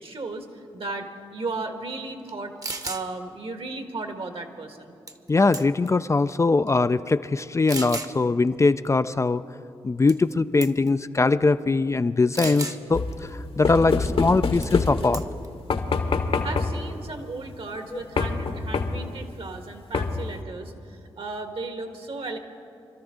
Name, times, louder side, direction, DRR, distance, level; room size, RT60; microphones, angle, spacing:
voice 1, 0.0-2.6 2.8-4.9 16.4-22.4, right 3 dB, 55° right, 6 dB, 1.5 m, -35 dB
sound 1, 2.3-2.4 2.6-3.0 5.1-5.3 5.5-6.0 6.7-6.8 7.7-8.1 10.1-10.3 10.6-10.9 12.3-12.8 14.6-14.8 15.1-15.5, right 2 dB, 30° right, 1.0 m, -33 dB
voice 2, 5.3-9.4 9.8-15.2 17.9-18.0, left 3 dB, 25° left, 11 dB, 0.4 m, -22 dB
sound 2, 12.9-15.3 15.7-16.9 18.2-19.1 19.9-20.4, left 4 dB, 55° left, 1.1 m, -26 dB
25.0 x 13.0 x 3.7 m, 2.6 s
supercardioid pair, 40°, 11 cm